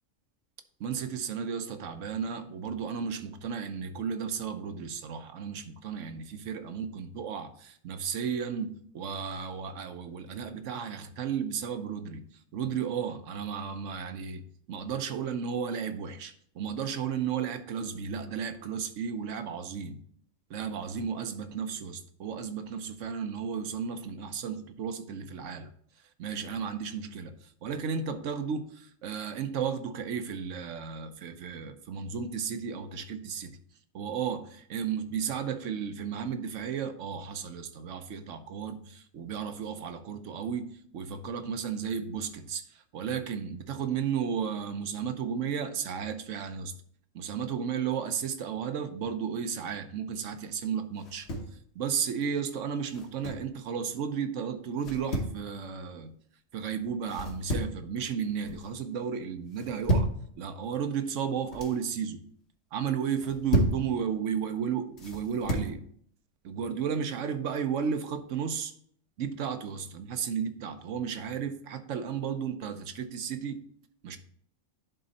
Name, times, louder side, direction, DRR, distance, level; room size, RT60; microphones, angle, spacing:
voice 1, 0.8-12.3 12.5-20.0 20.5-25.7 26.2-33.6 33.9-46.7 47.1-51.3 51.7-56.2 56.5-60.1 60.4-62.2 62.7-65.8 66.4-68.7 69.2-73.6 74.0-74.2, right 7 dB, 70° right, 1.1 m, -34 dB
sound 1, 51.0-51.6 52.9-53.5 54.8-55.4 57.1-57.8 58.2-58.7 59.5-60.2 61.3-61.8 63.1-63.8 65.0-65.7, right 1 dB, 55° left, 1.4 m, -31 dB
10.5 x 3.9 x 4.1 m
omnidirectional pair, 1.4 m